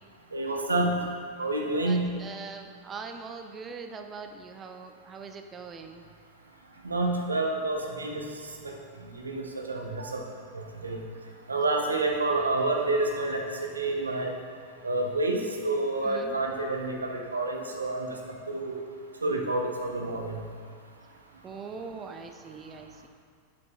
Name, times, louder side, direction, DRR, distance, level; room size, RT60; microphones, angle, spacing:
voice 1, 0.3-1.0 1.4-2.2 6.8-8.2 9.2-10.2 10.8-11.0 11.5-13.4 13.7-14.3 14.8-15.4 15.6-18.1 18.5-18.7 19.2-20.4, right 2 dB, 75° right, 1 dB, 0.8 m, -28 dB
voice 2, 1.8-6.1 16.0-16.4 21.4-23.1, right 5 dB, 25° right, 6 dB, 0.5 m, -42 dB
8.6 x 7.7 x 2.2 m, 2.1 s
figure-of-eight pair, 90°, 0 cm